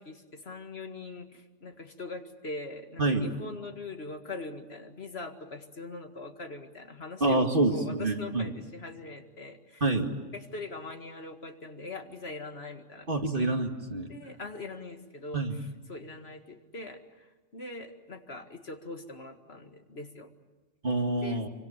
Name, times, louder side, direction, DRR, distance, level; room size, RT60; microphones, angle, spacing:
voice 1, 0.0-13.1 13.3-13.4 14.1-20.3 21.2-21.4, left 3 dB, 60° left, 5 dB, 2.2 m, -42 dB
voice 2, 7.2-8.5 9.8-10.1 13.1-14.1 15.3-15.5 20.8-21.5, right 2 dB, 45° right, 3 dB, 2.5 m, -27 dB
27.5 x 25.0 x 7.4 m, 1.2 s
omnidirectional pair, 1.2 m